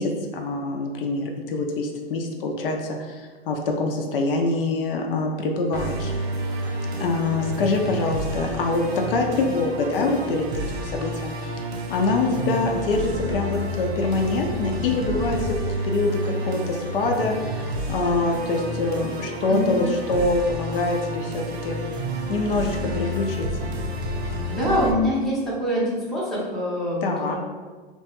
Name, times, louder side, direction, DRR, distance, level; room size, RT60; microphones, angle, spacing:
voice 1, 0.0-6.1 7.0-8.8 9.1-10.4 10.7-15.5 15.8-21.8 22.3-23.7 27.0-27.4, left 3 dB, 65° left, 2 dB, 0.5 m, -25 dB
Musical instrument, 5.7-24.9, right 1 dB, 85° right, 0.6 m, -30 dB
voice 2, 24.5-27.4, equal, ahead, -8 dB, 0.6 m, -24 dB
2.9 x 2.2 x 2.8 m, 1.4 s
hypercardioid pair, 130°, 31 cm